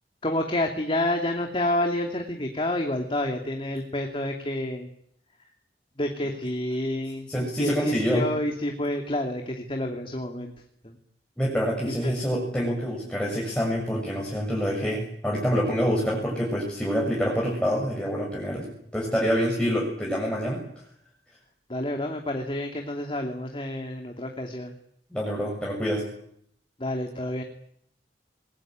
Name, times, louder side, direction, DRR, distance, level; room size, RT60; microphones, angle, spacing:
voice 1, 0.2-4.9 6.0-7.3 7.6-10.5 10.8-11.0 12.0-12.1 21.7-24.7 26.8-27.4, left 1 dB, 30° left, 3 dB, 2.8 m, -29 dB
voice 2, 7.3-8.3 11.4-20.6 25.1-26.0, equal, 5° left, -2 dB, 7.1 m, -26 dB
28.0 x 21.5 x 9.0 m, 0.70 s
head